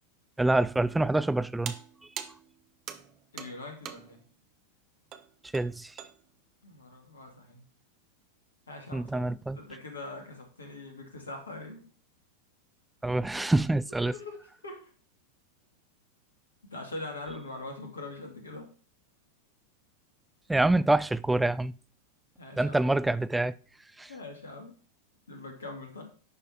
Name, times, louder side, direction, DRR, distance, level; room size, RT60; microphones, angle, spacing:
voice 1, 0.4-1.8 5.5-5.9 8.9-9.6 13.0-14.1 20.5-21.8 22.6-23.6 24.0-24.1, right 2 dB, 5° right, 0.3 m, -26 dB
sound 1, 1.7-4.3 5.1-5.3 5.5-6.2, right 9 dB, 35° right, 0.8 m, -42 dB
voice 2, 3.3-4.2 6.6-7.6 8.7-11.9 14.0-14.4 14.6-14.9 16.6-18.7 22.4-22.8 24.1-24.7 25.3-26.0, left 2 dB, 70° left, 2.2 m, -42 dB
10.5 x 4.9 x 4.3 m
figure-of-eight pair, 90°, 0 cm